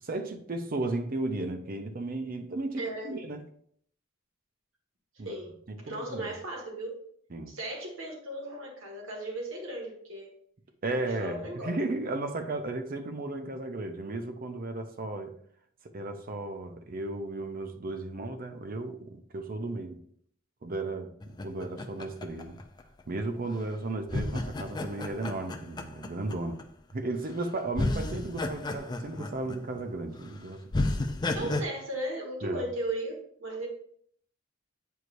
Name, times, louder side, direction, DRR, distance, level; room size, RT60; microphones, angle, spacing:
voice 1, 0.0-3.4 5.2-5.4 5.7-6.3 7.3-7.5 10.8-15.4 15.9-20.0 20.6-22.6 23.1-26.6 26.9-30.7 31.4-31.5 32.4-32.7, right 2 dB, 45° right, 0.6 m, -35 dB
voice 2, 2.8-3.2 5.2-5.6 5.9-7.0 7.5-10.3 11.0-11.7 31.3-33.1 33.4-33.7, right 1 dB, 80° right, 1.8 m, -36 dB
sound 1, 21.2-23.2 24.1-26.6 27.3-27.4 27.7-29.8 30.2-30.3 30.7-31.6, left 2 dB, 20° left, 0.4 m, -32 dB
8.0 x 4.6 x 2.6 m
head